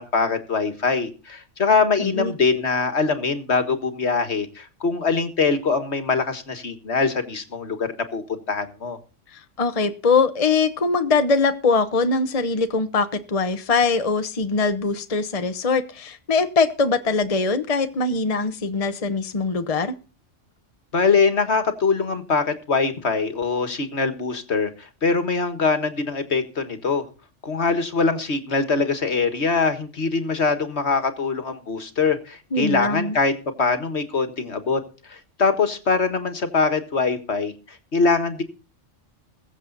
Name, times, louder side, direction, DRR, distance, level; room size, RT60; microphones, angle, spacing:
voice 1, 0.0-9.0 20.9-27.0 27.4-33.3 33.6-38.4, left 4 dB, 60° left, 9 dB, 1.9 m, -23 dB
voice 2, 2.0-2.3 9.3-19.9 32.5-33.2, left 4 dB, 30° left, 9 dB, 1.0 m, -22 dB
21.5 x 7.6 x 4.0 m, 0.35 s
omnidirectional pair, 1.3 m